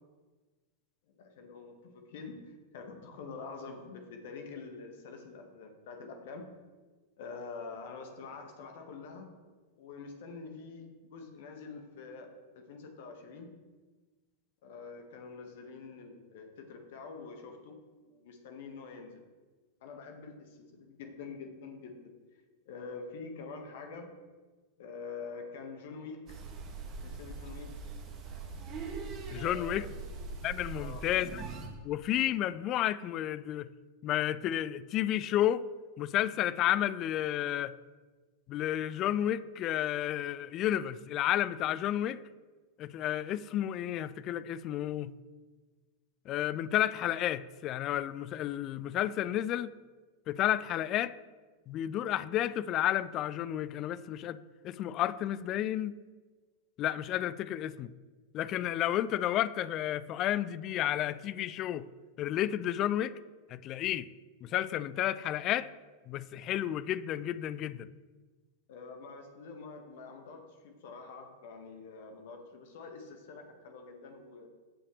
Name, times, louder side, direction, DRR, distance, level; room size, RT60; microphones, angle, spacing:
voice 1, 1.1-6.5 7.2-9.3 9.8-13.5 14.6-17.8 18.0-19.2 19.8-22.1 22.6-24.1 24.8-26.4 27.0-27.7 29.3-29.9 30.8-31.0 68.7-74.5, left 4 dB, 55° left, 4 dB, 1.5 m, -46 dB
sound 1, 26.3-31.7, right 4 dB, 35° right, 1.7 m, -41 dB
voice 2, 29.3-29.9 30.4-31.4 31.8-33.7 34.0-35.7 36.0-37.7 38.5-42.2 42.8-45.1 46.3-49.7 50.3-51.1 51.7-54.4 54.6-55.9 56.8-57.9 58.3-61.9 62.2-63.2 63.5-64.1 64.4-65.7 66.1-67.9, left 12 dB, 35° left, 17 dB, 0.3 m, -31 dB
16.5 x 5.6 x 3.3 m, 1.3 s
figure-of-eight pair, 90°, 0 cm